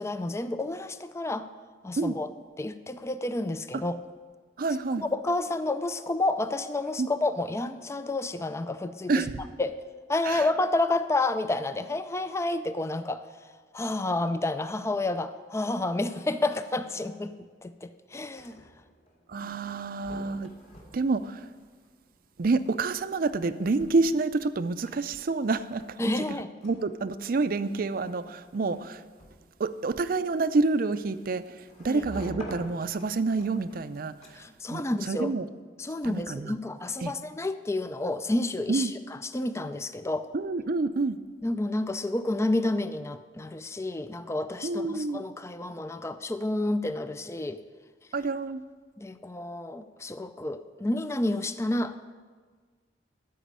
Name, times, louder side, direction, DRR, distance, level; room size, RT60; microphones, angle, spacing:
voice 1, 0.0-1.5 1.8-2.3 2.6-4.0 5.0-9.2 9.6-9.8 10.1-17.3 17.6-18.7 19.4-19.5 26.0-26.5 31.9-32.0 34.3-35.4 35.8-40.3 41.4-47.6 49.0-52.1, left 2 dB, 15° left, 11 dB, 0.4 m, -30 dB
voice 2, 4.6-5.1 7.0-7.1 9.1-9.4 10.2-10.5 19.3-20.5 20.9-21.5 22.4-26.1 26.6-29.0 29.6-34.4 34.7-35.5 36.0-36.5 37.0-37.1 38.7-38.9 40.3-41.2 44.6-45.2 48.1-48.6, right 3 dB, 55° right, 13 dB, 0.5 m, -28 dB
sound 1, 18.2-34.7, equal, 40° left, 2.3 m, -50 dB
13.5 x 5.1 x 8.6 m, 1.5 s
head